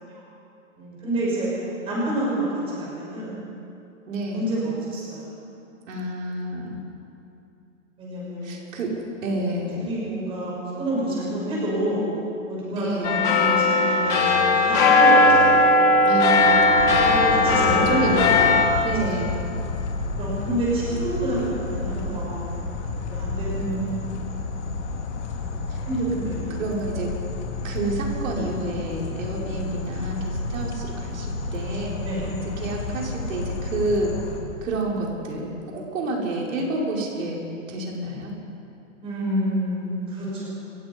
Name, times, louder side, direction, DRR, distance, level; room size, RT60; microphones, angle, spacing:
voice 1, 0.8-1.5 1.8-3.4 4.3-5.3 8.0-8.8 9.8-12.0 12.4-15.9 16.4-16.7 17.0-18.4 19.0-19.3 20.2-22.4 23.0-23.5 24.6-24.8 25.5-26.6 32.0-32.2 39.0-40.5, right 1 dB, 15° right, -6 dB, 6.2 m, -28 dB
voice 2, 4.1-4.5 5.9-6.8 8.4-8.9 9.2-9.9 12.7-13.3 16.0-17.0 17.8-19.4 23.6-23.9 25.7-25.8 26.6-27.1 27.6-31.9 32.6-34.1 34.6-37.4 37.7-38.3, right 2 dB, 80° right, -2 dB, 5.6 m, -29 dB
sound 1, 13.0-18.7, left 2 dB, 10° left, 0.6 m, -18 dB
sound 2, 14.0-20.0, right 6 dB, 40° right, 7.1 m, -38 dB
sound 3, 16.8-34.4, left 3 dB, 60° left, 3.8 m, -31 dB
29.5 x 16.5 x 5.5 m, 2.7 s
hypercardioid pair, 175°, 39 cm